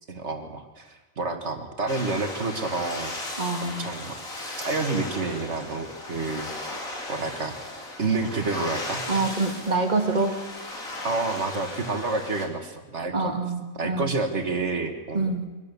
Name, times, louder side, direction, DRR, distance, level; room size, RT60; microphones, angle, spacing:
voice 1, 0.1-3.2 3.6-4.2 4.6-6.8 7.1-7.6 8.0-9.0 11.0-13.3 13.8-15.3, right 3 dB, 55° right, 6 dB, 2.1 m, -29 dB
sound 1, 1.9-12.5, left 2 dB, 85° left, 3.4 m, -36 dB
voice 2, 3.4-3.9 9.1-10.4 13.1-14.0 15.1-15.5, right 3 dB, 30° right, 4 dB, 2.3 m, -26 dB
23.5 x 17.0 x 7.0 m, 1.3 s
omnidirectional pair, 1.4 m